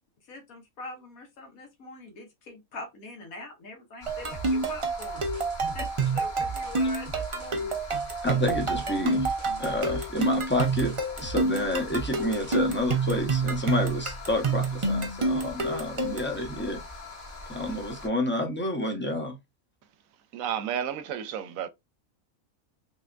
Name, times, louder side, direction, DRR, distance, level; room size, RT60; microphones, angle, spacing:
voice 1, 0.3-5.2 5.7-7.8, left 2 dB, 80° left, 1.5 m, -43 dB
sound 1, 4.0-18.1, left 2 dB, 40° left, 1.0 m, -42 dB
sound 2, 4.1-16.4, right 3 dB, 35° right, 0.5 m, -28 dB
sound 3, 4.3-12.6, right 5 dB, 55° right, 1.2 m, -41 dB
voice 2, 8.2-9.3 9.6-10.9 11.2-16.8 17.5-19.4, left 1 dB, 10° left, 0.5 m, -29 dB
voice 3, 20.3-21.7, right 9 dB, 80° right, 1.0 m, -31 dB
3.4 x 3.3 x 2.4 m
omnidirectional pair, 1.5 m